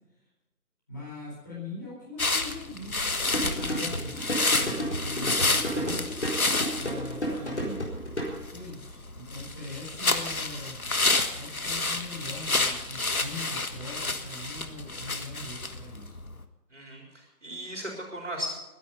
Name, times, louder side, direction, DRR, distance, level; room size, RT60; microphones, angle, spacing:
voice 1, 0.9-3.0 3.3-6.2 6.7-7.8 8.5-10.8 11.3-16.1, left 2 dB, 10° left, -7 dB, 4.4 m, -41 dB
sound 1, 2.2-16.4, left 2 dB, 60° left, 1.5 m, -30 dB
sound 2, 3.2-8.4, equal, 45° left, 4.1 m, -32 dB
voice 2, 3.6-3.9 16.7-18.5, equal, 45° right, 0 dB, 4.1 m, -38 dB
21.0 x 10.5 x 5.4 m, 1.1 s
figure-of-eight pair, 170°, 47 cm